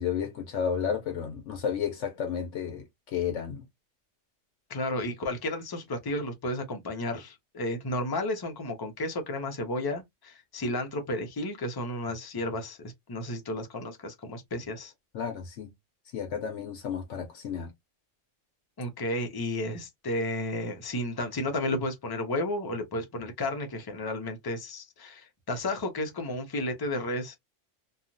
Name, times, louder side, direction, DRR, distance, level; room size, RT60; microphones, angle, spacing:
voice 1, 0.0-2.8 3.1-3.7 15.1-15.7 16.1-17.7, left 7 dB, 75° left, 1.0 m, -32 dB
voice 2, 4.7-14.9 18.8-27.4, left 1 dB, 25° left, 0.5 m, -32 dB
3.0 x 2.3 x 2.5 m
omnidirectional pair, 1.3 m